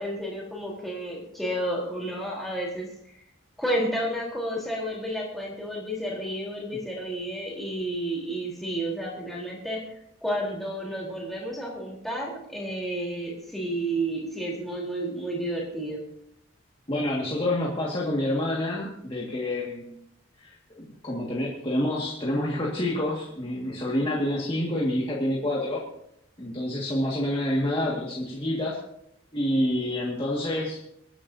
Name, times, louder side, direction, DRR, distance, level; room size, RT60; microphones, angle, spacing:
voice 1, 0.0-2.9 3.6-16.0, right 1 dB, ahead, -4 dB, 3.8 m, -31 dB
voice 2, 16.9-20.0 20.4-25.8 26.4-28.8 29.3-30.8, left 1 dB, 25° left, -5 dB, 2.0 m, -28 dB
27.5 x 10.0 x 2.8 m, 0.75 s
head